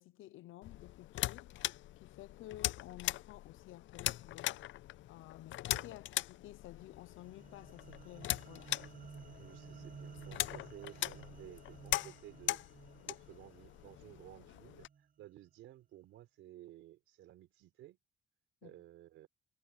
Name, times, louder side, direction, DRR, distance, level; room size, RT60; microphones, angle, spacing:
voice 1, 0.0-1.5 2.0-4.6 5.1-8.7 18.6-18.7, left 15 dB, 85° left, 0.9 m, -53 dB
sound 1, 0.6-14.9, left 15 dB, 70° left, 0.5 m, -41 dB
sound 2, 6.8-15.2, right 7 dB, 45° right, 0.9 m, -55 dB
voice 2, 9.4-12.6 13.0-18.0 18.6-19.3, right 14 dB, 90° right, 4.7 m, -55 dB
cardioid pair, 90°, 20 cm